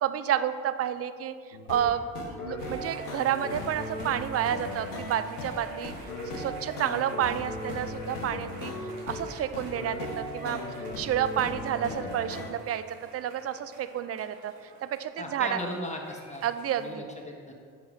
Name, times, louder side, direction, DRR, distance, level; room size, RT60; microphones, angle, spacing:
voice 1, 0.0-1.3 1.7-2.0 2.5-5.9 6.3-8.7 9.1-10.6 11.0-14.5 14.8-15.6 16.4-17.1, right 10 dB, 35° right, 12 dB, 0.4 m, -30 dB
sound 1, 1.5-12.5, left 2 dB, 85° left, 0.8 m, -37 dB
sound 2, 2.6-16.9, right 2 dB, 70° right, 1.2 m, -51 dB
voice 2, 15.2-16.4 16.8-17.5, left 1 dB, 15° left, 0 dB, 1.2 m, -37 dB
6.1 x 4.6 x 5.3 m, 2.1 s
hypercardioid pair, 50°, 45 cm